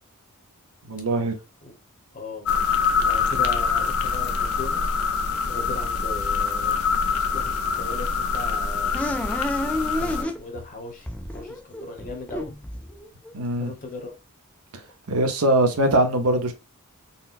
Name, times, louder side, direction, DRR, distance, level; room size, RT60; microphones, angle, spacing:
voice 1, 0.9-1.3 13.3-13.7 15.1-16.5, right 1 dB, 75° right, 0.7 m, -21 dB
voice 2, 2.1-2.5 3.0-4.9 5.4-6.8 7.3-9.1 10.0-12.5 13.6-14.1, left 2 dB, 40° left, 0.9 m, -37 dB
sound 1, 2.5-10.2, left 5 dB, 75° left, 0.5 m, -25 dB
sound 2, 8.9-10.7 11.1-13.3, left 1 dB, 5° left, 0.4 m, -30 dB
4.0 x 2.1 x 2.4 m
head